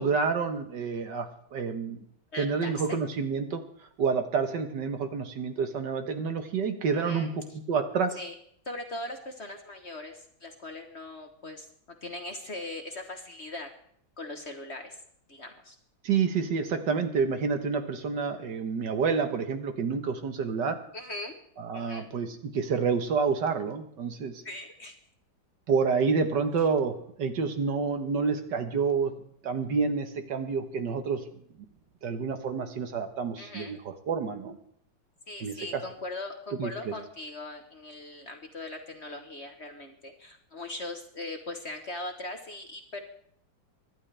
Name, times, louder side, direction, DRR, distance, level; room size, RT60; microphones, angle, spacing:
voice 1, 0.0-2.0 2.4-3.6 4.0-8.2 16.0-20.8 21.6-24.4 25.7-31.2 32.0-34.6 35.4-35.8 36.6-36.7, right 5 dB, 65° right, 7 dB, 1.8 m, -28 dB
voice 2, 2.3-3.0 6.9-7.6 8.2-8.3 8.6-11.7 12.0-13.7 14.2-15.0 15.3-15.8 20.9-21.3 21.7-22.1 24.4-25.0 33.4-33.8 35.3-43.0, left 2 dB, 40° left, 5 dB, 1.3 m, -40 dB
24.5 x 11.5 x 3.4 m, 0.65 s
omnidirectional pair, 2.1 m